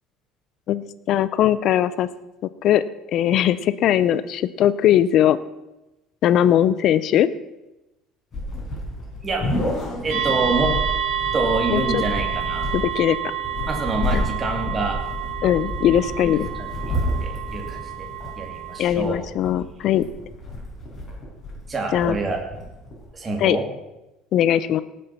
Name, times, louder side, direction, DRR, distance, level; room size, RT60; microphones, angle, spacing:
voice 1, 0.7-2.1 2.4-2.8 3.1-5.4 6.2-7.3 11.7-12.0 12.7-13.2 14.1-14.3 15.4-16.5 18.8-20.1 21.9-22.2 23.4-23.6 24.3-24.8, left 11 dB, 50° left, 15 dB, 0.6 m, -20 dB
sound 1, 8.3-23.1, left 1 dB, 25° left, 5.5 m, -30 dB
voice 2, 10.0-10.7 11.3-12.7 13.7-15.0 16.6-16.9 17.2-18.1 18.4-19.2 21.7-22.4 23.1-23.6, right 3 dB, 20° right, 1 dB, 2.7 m, -26 dB
sound 2, 10.1-18.8, right 10 dB, 75° right, 2.6 m, -29 dB
18.0 x 7.8 x 5.9 m, 0.96 s
cardioid pair, 145°, 0 cm